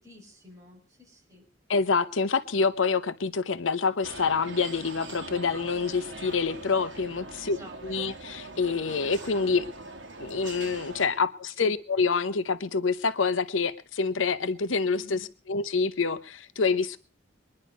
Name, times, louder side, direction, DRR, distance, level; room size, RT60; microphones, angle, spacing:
voice 1, 0.0-1.4 7.4-8.1 11.6-11.7 14.9-15.3, left 1 dB, 15° right, -1 dB, 5.9 m, -50 dB
voice 2, 1.7-7.6 7.8-9.6 10.2-17.0, left 4 dB, 90° left, 14 dB, 0.8 m, -27 dB
sound 1, 4.0-11.1, right 2 dB, 70° right, 2.2 m, -42 dB
22.5 x 10.5 x 5.3 m, 0.40 s
head